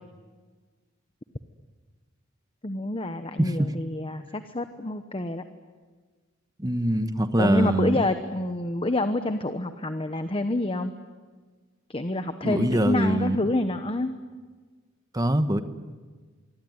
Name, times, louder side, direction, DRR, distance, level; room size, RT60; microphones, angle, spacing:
voice 1, 2.6-5.4 7.4-10.9 11.9-14.1, left 2 dB, 25° left, 9 dB, 1.0 m, -28 dB
voice 2, 6.6-8.0 12.4-13.4 15.1-15.6, right 1 dB, 20° right, 10 dB, 1.2 m, -23 dB
25.5 x 24.0 x 9.5 m, 1.4 s
head